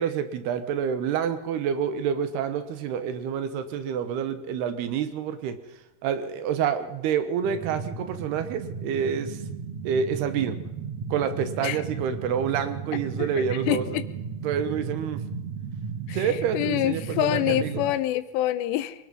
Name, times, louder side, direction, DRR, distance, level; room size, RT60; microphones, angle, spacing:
voice 1, 0.0-5.6 6.0-9.4 9.8-10.6 11.1-13.8 14.4-15.2 16.1-17.8, right 8 dB, 70° right, 10 dB, 3.1 m, -28 dB
sound 1, 7.4-17.9, right 5 dB, 50° right, 2.5 m, -35 dB
voice 2, 13.7-14.0 16.1-16.3 16.5-19.0, left 13 dB, 80° left, 13 dB, 3.0 m, -26 dB
25.0 x 19.0 x 5.5 m, 1.0 s
omnidirectional pair, 5.2 m